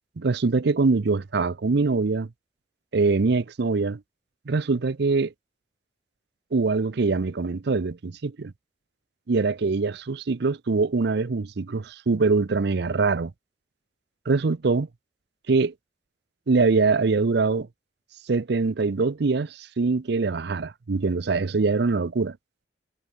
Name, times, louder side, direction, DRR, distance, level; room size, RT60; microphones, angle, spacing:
voice 1, 0.2-2.3 2.9-4.0 4.5-5.3 6.5-8.5 9.3-13.3 14.3-14.9 15.5-15.7 16.5-17.7 18.3-22.4, right 4 dB, 65° right, 0.6 m, -23 dB
head